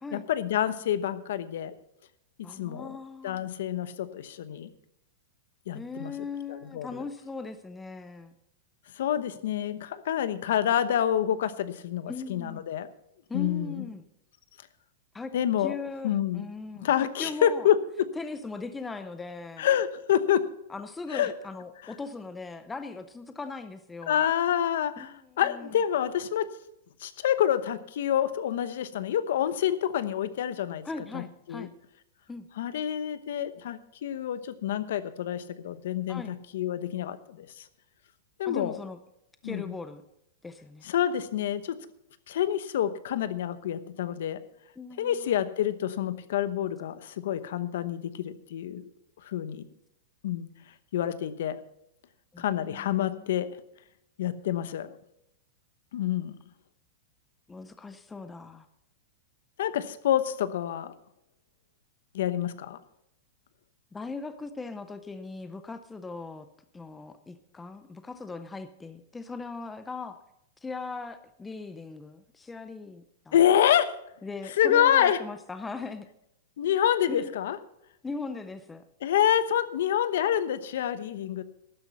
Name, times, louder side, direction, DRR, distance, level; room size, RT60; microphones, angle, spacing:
voice 1, 0.1-1.7 2.6-3.0 3.2-4.7 5.7-6.1 6.5-7.0 9.0-12.9 13.3-13.8 15.3-15.8 16.0-16.4 16.8-18.1 19.6-20.4 21.1-21.3 24.1-26.5 27.0-30.8 31.1-31.2 31.5-31.7 32.6-37.6 38.4-38.8 39.4-39.7 40.8-41.8 42.3-44.4 45.0-48.9 49.2-49.6 50.2-50.5 50.9-51.6 52.4-53.6 54.2-55.0 55.9-56.4 59.6-60.9 62.1-62.8 73.3-73.9 74.6-75.2 76.6-77.6 79.0-81.4, left 10 dB, 65° left, 14 dB, 0.9 m, -27 dB
voice 2, 2.4-3.5 5.7-8.3 12.1-12.6 13.3-14.0 15.1-15.3 15.6-17.7 18.2-19.7 20.7-24.2 25.0-25.8 30.8-31.7 32.3-32.5 36.1-36.4 38.4-39.0 39.4-40.0 40.4-40.9 44.8-45.3 52.3-53.3 57.5-58.7 63.9-66.5 66.7-70.2 70.6-73.4 74.2-76.1 77.1-77.3 78.0-78.8, left 4 dB, 5° left, 10 dB, 0.5 m, -39 dB
12.5 x 10.0 x 5.5 m, 0.80 s
supercardioid pair, 170°, 0 cm